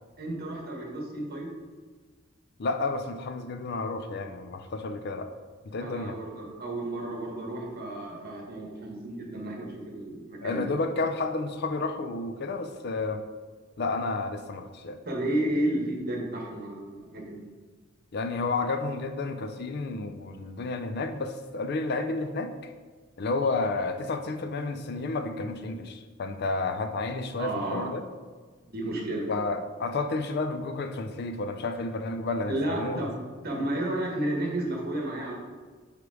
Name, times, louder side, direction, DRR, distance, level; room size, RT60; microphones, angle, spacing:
voice 1, 0.2-1.5 5.8-10.7 15.1-17.5 27.4-27.9 28.6-29.3 32.5-33.1 33.4-35.3, right 1 dB, 50° right, 0 dB, 1.3 m, -32 dB
voice 2, 2.6-5.3 5.7-6.2 10.4-13.2 13.8-15.0 18.1-22.7 23.2-28.0 29.3-33.1 33.5-33.7, left 3 dB, 55° left, 8 dB, 0.5 m, -31 dB
5.0 x 4.9 x 4.8 m, 1.4 s
head